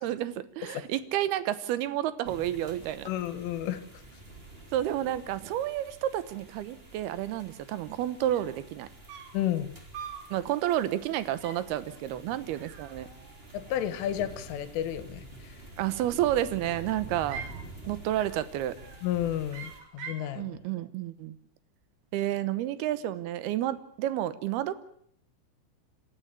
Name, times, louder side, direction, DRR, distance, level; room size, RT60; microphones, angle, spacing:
voice 1, 0.0-3.1 4.7-8.9 10.3-13.1 15.8-17.4 17.9-18.8 20.3-21.3 22.1-24.8, right 12 dB, 70° right, 14 dB, 2.5 m, -30 dB
sound 1, 2.2-19.8, right 2 dB, 15° right, 2.9 m, -48 dB
voice 2, 3.1-3.8 9.3-9.7 13.5-15.5 19.0-20.5, left 11 dB, 85° left, 12 dB, 4.0 m, -31 dB
sound 2, 8.3-8.6 9.1-9.5 9.9-10.3 10.7-11.0 11.4-11.7 12.5-13.4 13.7-14.4 15.6-16.2 16.7-17.6 18.1-18.5 18.8-19.1 19.5-20.3, right 6 dB, 55° right, 3.5 m, -45 dB
26.5 x 13.5 x 8.7 m, 0.65 s
omnidirectional pair, 5.6 m